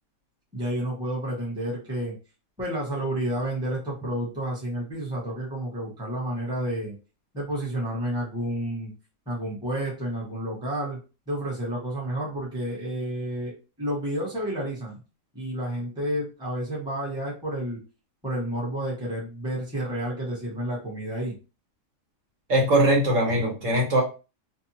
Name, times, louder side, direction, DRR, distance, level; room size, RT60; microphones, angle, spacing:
voice 1, 0.5-2.1 2.6-7.0 7.3-8.9 9.3-11.0 11.3-15.0 15.3-17.8 18.2-21.3, right 1 dB, 5° right, -5 dB, 0.9 m, -30 dB
voice 2, 22.5-24.0, right 1 dB, 70° right, -1 dB, 1.5 m, -21 dB
2.7 x 2.3 x 2.7 m, 0.32 s
omnidirectional pair, 1.4 m